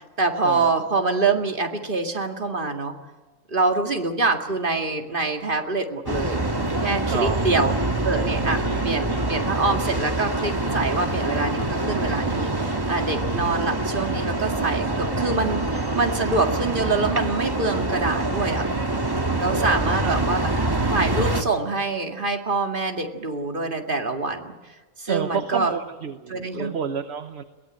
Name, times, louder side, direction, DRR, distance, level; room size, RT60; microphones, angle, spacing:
voice 1, 0.0-2.9 3.5-6.5 6.8-7.7 8.0-18.7 19.4-20.4 20.9-24.5 25.0-25.7 26.3-26.8, right 3 dB, 40° right, 4 dB, 2.3 m, -25 dB
sound 1, 6.1-21.4, right 2 dB, 20° right, 1.6 m, -25 dB
voice 2, 7.1-7.6 8.7-9.4 19.5-20.2 25.1-27.4, right 6 dB, 55° right, 9 dB, 1.2 m, -30 dB
22.5 x 18.5 x 9.0 m, 1.3 s
omnidirectional pair, 1.3 m